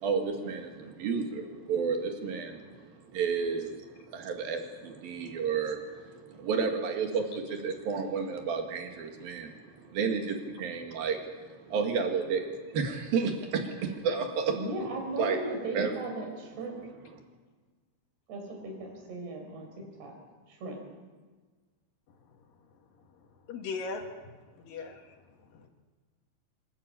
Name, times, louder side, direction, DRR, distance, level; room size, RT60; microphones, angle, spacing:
voice 1, 0.0-14.6 15.2-15.4 15.8-15.9, right 5 dB, 70° right, 4 dB, 3.7 m, -31 dB
voice 2, 14.5-16.8 18.3-20.2 20.5-20.8, right 2 dB, 85° right, 2 dB, 6.3 m, -37 dB
voice 3, 22.1-22.4 22.7-25.7, left 4 dB, 65° left, 4 dB, 3.2 m, -42 dB
26.0 x 12.5 x 8.7 m, 1.4 s
omnidirectional pair, 4.5 m